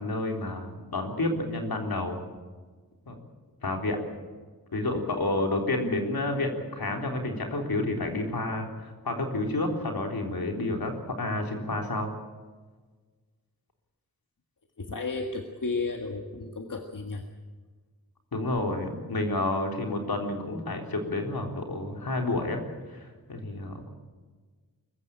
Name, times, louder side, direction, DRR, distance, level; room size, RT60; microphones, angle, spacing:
voice 1, 0.0-2.2 3.1-3.2 3.6-4.0 4.7-12.1 18.3-22.6 22.9-23.9, left 2 dB, 80° left, 2 dB, 3.8 m, -30 dB
voice 2, 14.8-17.2, left 3 dB, 60° left, 3 dB, 1.8 m, -33 dB
23.5 x 15.0 x 8.9 m, 1.4 s
wide cardioid pair, 80°, 36 cm